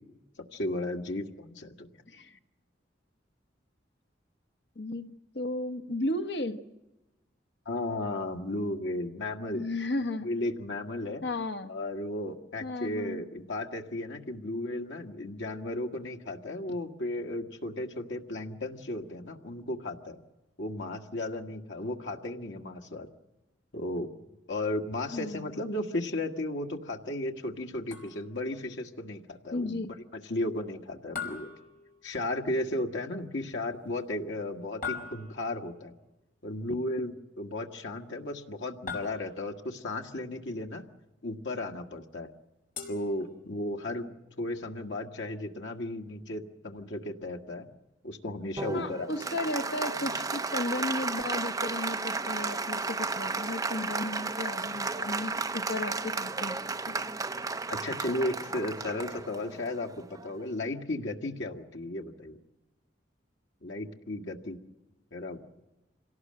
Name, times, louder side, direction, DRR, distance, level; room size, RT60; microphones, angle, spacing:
voice 1, 0.5-1.9 7.7-9.6 10.2-11.2 11.7-20.2 20.6-23.1 23.7-24.1 24.5-29.8 30.3-31.5 32.0-35.9 36.4-40.8 41.2-42.3 42.9-44.1 44.4-47.7 48.0-49.1 57.7-59.9 60.2-62.4 63.6-64.6 65.1-65.6, left 1 dB, 85° left, 3 dB, 1.7 m, -34 dB
voice 2, 2.1-2.4 4.7-6.6 9.5-10.3 11.2-11.7 12.6-13.2 25.1-25.5 29.5-29.9 48.7-56.6 56.9-57.0, left 2 dB, 70° left, 9 dB, 1.2 m, -34 dB
sound 1, 27.9-28.5 31.2-32.4 34.8-35.7 38.9-39.7 42.8-43.8, left 5 dB, 50° left, 4.8 m, -41 dB
Applause, 48.6-60.4, right 4 dB, 20° right, 0.7 m, -33 dB
26.5 x 18.0 x 7.6 m, 1.0 s
head